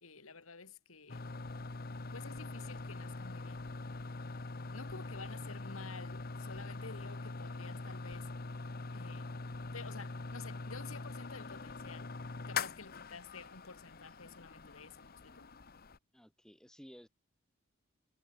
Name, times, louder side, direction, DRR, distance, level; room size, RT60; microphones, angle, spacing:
voice 1, 0.0-1.3 2.1-3.7 4.7-8.3 8.9-9.3 9.7-12.2 12.5-15.5, left 4 dB, 85° left, 2.4 m, -51 dB
sound 1, 1.1-16.0, left 3 dB, 45° left, 1.0 m, -43 dB
voice 2, 16.1-17.1, equal, 5° left, 2.9 m, -55 dB
head